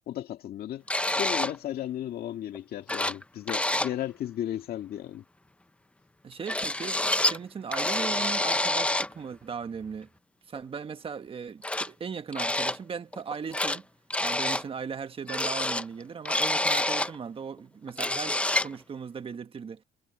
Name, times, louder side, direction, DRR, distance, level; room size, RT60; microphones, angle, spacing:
voice 1, 0.1-0.8 1.2-5.2, left 12 dB, 65° left, 2.3 m, -34 dB
sound 1, 0.9-1.6 2.5-2.6 2.9-3.2 3.5-3.9 6.5-7.4 7.7-9.1 10.6-10.7 11.6-11.9 12.3-12.8 13.1-13.8 14.1-14.6 15.3-17.2 17.6-17.7 17.9-18.7, left 1 dB, 5° left, 0.9 m, -27 dB
voice 2, 6.2-10.1 10.5-13.8 14.2-19.8, right 6 dB, 35° right, 1.5 m, -38 dB
cardioid pair, 110°, 17 cm